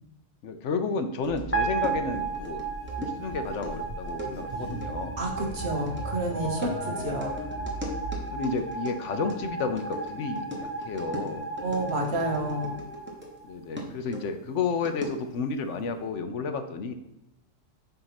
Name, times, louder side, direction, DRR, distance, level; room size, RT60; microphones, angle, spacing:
voice 1, 0.4-2.6 3.0-5.2 6.8-7.2 8.3-11.5 13.4-16.9, left 4 dB, 70° left, 7 dB, 1.0 m, -31 dB
sound 1, 1.2-13.4 13.8-15.4, equal, 10° right, 1.1 m, -40 dB
sound 2, 1.2-8.2, right 2 dB, 30° right, 1.3 m, -39 dB
sound 3, 1.5-13.8, right 4 dB, 15° left, 0.5 m, -35 dB
voice 2, 5.2-7.3 11.6-12.7, right 1 dB, 60° right, 0 dB, 1.3 m, -29 dB
7.7 x 2.8 x 5.8 m, 0.88 s
omnidirectional pair, 1.3 m